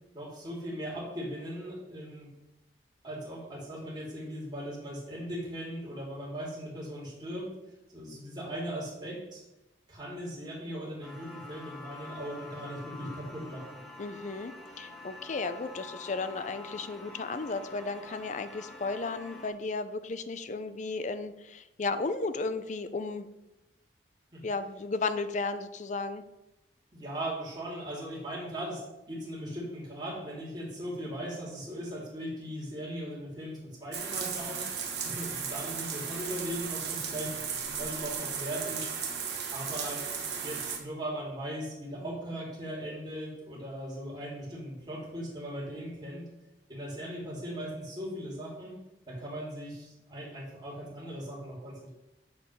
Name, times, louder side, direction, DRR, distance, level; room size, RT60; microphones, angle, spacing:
voice 1, 0.1-2.3 3.0-7.5 7.9-9.4 9.9-13.8 24.3-24.4 26.9-28.8 29.1-34.6 35.0-37.3 37.8-38.9 39.5-40.0 40.3-46.3 46.7-48.8 49.1-51.9, equal, 25° right, -5 dB, 2.7 m, -38 dB
sound 1, 11.0-19.5, left 3 dB, ahead, 1.1 m, -47 dB
voice 2, 14.0-23.3 24.4-26.2, left 3 dB, 40° left, 11 dB, 0.5 m, -34 dB
sound 2, 33.9-40.8, right 6 dB, 65° right, 1.3 m, -35 dB
7.5 x 4.6 x 5.5 m, 0.95 s
head